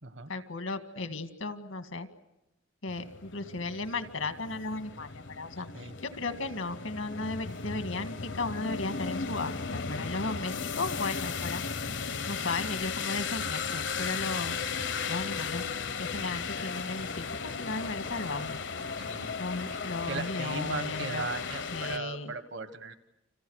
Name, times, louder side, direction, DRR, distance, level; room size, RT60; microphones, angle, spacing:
voice 1, 0.3-2.1 2.8-5.9 6.1-11.6 12.3-14.6 15.1-15.6 16.0-18.6 19.4-21.3 21.7-22.3, left 3 dB, 85° left, 8 dB, 2.0 m, -35 dB
sound 1, 2.9-22.0, left 5 dB, 65° left, 1.0 m, -36 dB
voice 2, 19.0-19.3 19.7-23.0, right 4 dB, 65° right, 10 dB, 1.5 m, -38 dB
29.5 x 27.0 x 6.5 m, 0.90 s
head